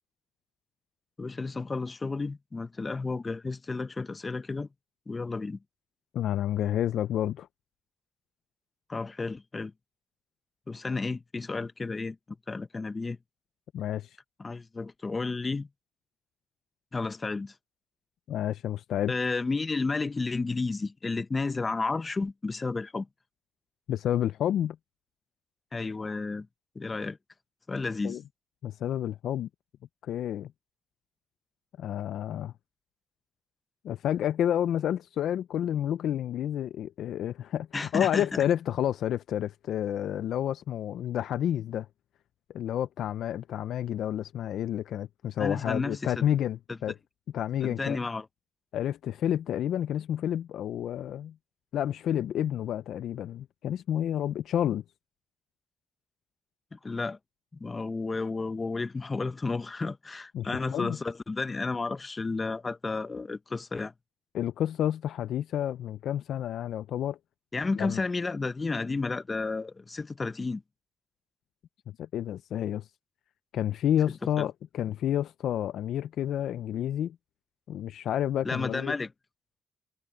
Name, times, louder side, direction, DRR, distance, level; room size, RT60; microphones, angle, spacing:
voice 1, 1.2-4.7 5.1-5.6 8.9-9.7 10.7-12.2 12.5-13.2 14.4-15.7 16.9-17.5 19.1-23.1 25.7-26.5 26.7-27.2 27.7-28.2 37.7-38.4 45.4-46.1 47.6-48.2 56.7-57.2 57.6-63.9 67.5-70.6 74.4-74.5 78.4-79.1, left 3 dB, 25° left, 1.1 m, -32 dB
voice 2, 6.1-7.5 13.7-14.2 18.3-19.1 23.9-24.8 28.0-28.2 28.6-29.5 30.0-30.5 31.8-32.5 33.8-41.9 42.5-46.9 47.3-48.0 48.7-51.3 51.7-54.8 60.3-61.0 64.3-67.2 67.8-68.0 72.0-72.9 73.5-77.2 77.7-78.9, left 10 dB, 75° left, 0.5 m, -30 dB
cardioid pair, 90°, 0 cm